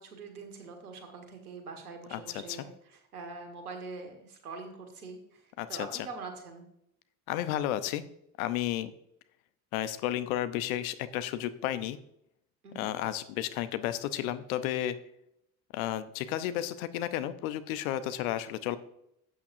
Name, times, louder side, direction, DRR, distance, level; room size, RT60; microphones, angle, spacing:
voice 1, 0.0-6.7 12.6-12.9, right 4 dB, 80° right, 4 dB, 1.8 m, -44 dB
voice 2, 2.1-2.4 5.6-6.1 7.3-8.0 8.4-8.9 9.7-12.0 12.7-15.0 15.7-18.8, left 12 dB, 70° left, 12 dB, 0.8 m, -32 dB
12.5 x 8.4 x 2.7 m, 0.77 s
figure-of-eight pair, 60°, 44 cm